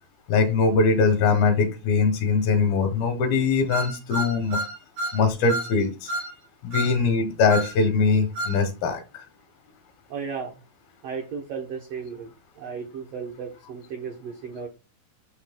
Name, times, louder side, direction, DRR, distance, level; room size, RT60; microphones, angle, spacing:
voice 1, 0.3-4.6 5.1-6.1 6.6-9.2, left 4 dB, 80° left, 3.1 m, -22 dB
sound 1, 3.7-5.2 5.5-5.7 6.1-6.3 6.7-6.9 7.5-7.7 8.3-8.6, right 1 dB, 55° right, 1.9 m, -29 dB
voice 2, 10.1-10.5 11.0-12.3 12.6-14.7, right 6 dB, 80° right, 1.4 m, -34 dB
12.0 x 4.2 x 2.2 m
omnidirectional pair, 4.3 m